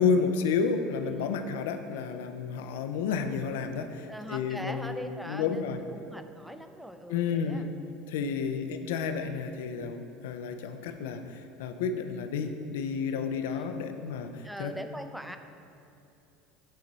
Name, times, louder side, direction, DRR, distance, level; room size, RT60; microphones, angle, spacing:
voice 1, 0.0-5.8 7.1-7.7 8.1-14.7, left 5 dB, 85° left, 7 dB, 0.3 m, -31 dB
voice 2, 4.1-5.6 5.9-7.7 8.2-8.4 13.5-13.7 14.4-15.4, equal, ahead, 8 dB, 0.3 m, -41 dB
7.6 x 3.0 x 4.0 m, 2.7 s
supercardioid pair, 115°, 0 cm